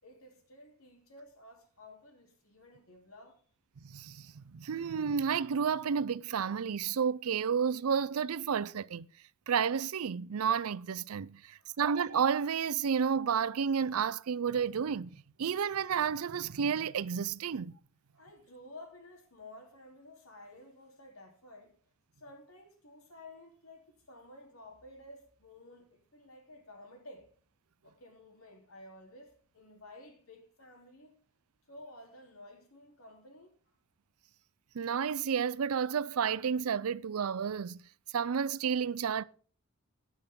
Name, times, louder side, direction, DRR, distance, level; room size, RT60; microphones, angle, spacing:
voice 1, 0.0-3.4 11.5-11.8 18.1-21.8 22.2-27.3 27.8-31.1 31.7-33.6, left 1 dB, 75° left, 3.3 m, -53 dB
voice 2, 3.8-9.1 9.5-15.1 15.4-17.7 34.7-37.8 38.1-39.2, right 7 dB, 85° right, 0.5 m, -31 dB
18.5 x 6.2 x 3.7 m
head